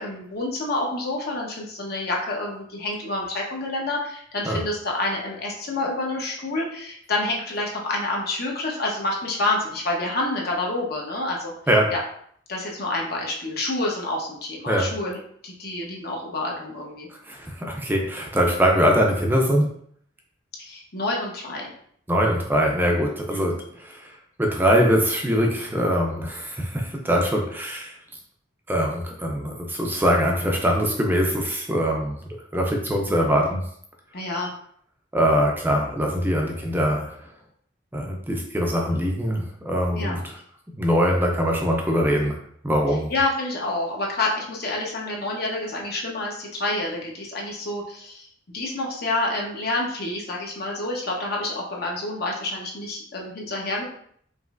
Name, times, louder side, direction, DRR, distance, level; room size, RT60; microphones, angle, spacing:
voice 1, 0.0-11.5 11.9-12.0 12.5-17.1 20.6-21.7 23.3-23.6 34.1-34.5 39.9-40.1 43.1-48.3 48.5-53.8, left 2 dB, 55° left, -2 dB, 1.0 m, -28 dB
voice 2, 17.3-19.7 22.1-24.0 24.4-27.9 28.7-32.2 32.5-33.7 35.1-37.1 37.9-40.2 40.8-42.4 42.6-43.1, equal, 10° right, 0 dB, 0.5 m, -22 dB
5.2 x 3.1 x 2.5 m, 0.64 s
head